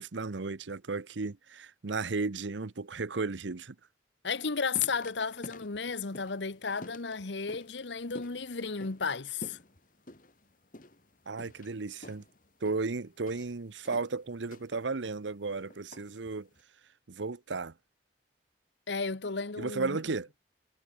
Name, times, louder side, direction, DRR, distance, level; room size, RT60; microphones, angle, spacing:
voice 1, 0.0-3.7 11.3-12.2 12.6-16.5 17.1-17.7 19.6-20.3, right 3 dB, 85° right, 0.8 m, -34 dB
voice 2, 4.2-9.6 18.9-20.0, left 5 dB, 80° left, 1.1 m, -33 dB
sound 1, 4.3-16.6, left 1 dB, 45° left, 1.9 m, -51 dB
head